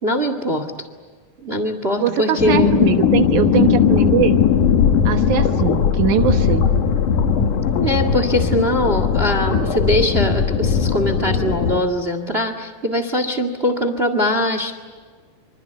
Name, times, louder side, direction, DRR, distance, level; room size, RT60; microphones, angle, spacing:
voice 1, 0.0-0.7 1.4-2.7 7.8-14.8, equal, 25° right, 9 dB, 1.8 m, -21 dB
voice 2, 2.0-4.4 5.1-6.6, right 10 dB, 80° right, 7 dB, 2.6 m, -21 dB
sound 1, 2.4-11.8, left 7 dB, 85° left, 3.3 m, -18 dB
26.5 x 25.5 x 8.4 m, 1.6 s
omnidirectional pair, 3.5 m